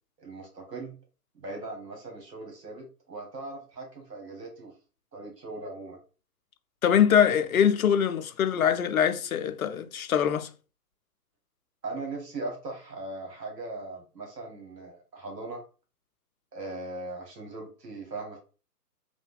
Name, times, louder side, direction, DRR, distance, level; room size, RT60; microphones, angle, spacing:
voice 1, 0.2-1.0 1.3-4.7 5.1-6.0 11.8-15.6 16.5-18.4, right 2 dB, 75° right, 1.4 m, -39 dB
voice 2, 6.8-10.5, left 8 dB, 60° left, 0.5 m, -23 dB
3.3 x 2.2 x 3.3 m
figure-of-eight pair, 140°, 49 cm